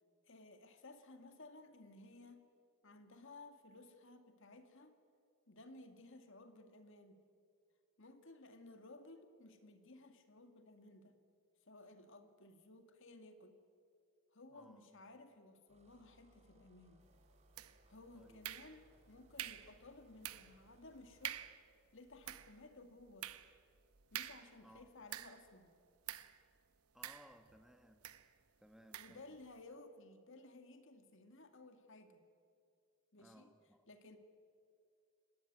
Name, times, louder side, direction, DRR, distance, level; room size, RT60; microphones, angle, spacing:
voice 1, 0.2-2.5 2.8-5.0 5.5-7.2 8.0-11.2 11.7-13.6 14.3-17.1 17.9-21.4 21.9-23.4 24.1-25.8 28.9-32.2 33.1-33.5 33.9-34.2, left 2 dB, 55° left, 8 dB, 2.2 m, -57 dB
voice 2, 14.5-14.9 18.1-18.5 24.6-24.9 26.9-28.1 28.6-29.4 33.2-33.8, equal, ahead, 7 dB, 1.4 m, -62 dB
sound 1, 15.7-21.5, right 1 dB, 30° right, 3.1 m, -69 dB
sound 2, 17.6-18.0 18.4-19.0 19.4-19.8 20.2-20.6 20.9-21.0 21.2-21.6 22.1-25.5 26.1-26.4 27.0-27.6 28.0-28.3 28.9-29.2, right 12 dB, 80° right, 1.0 m, -47 dB
29.5 x 17.5 x 9.5 m, 2.4 s
head